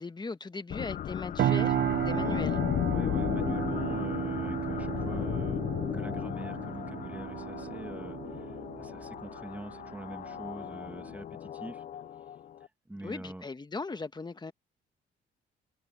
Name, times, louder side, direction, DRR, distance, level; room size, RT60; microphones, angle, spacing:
voice 1, 0.0-2.6 13.0-14.5, left 3 dB, 20° left, 1.4 m, -38 dB
sound 1, 0.7-12.7, left 10 dB, 45° left, 0.4 m, -35 dB
sound 2, 1.4-11.1, right 11 dB, 60° right, 0.8 m, -34 dB
voice 2, 2.9-5.6 5.9-11.8 12.9-13.5, right 1 dB, 5° right, 1.7 m, -44 dB
cardioid pair, 90°, 20 cm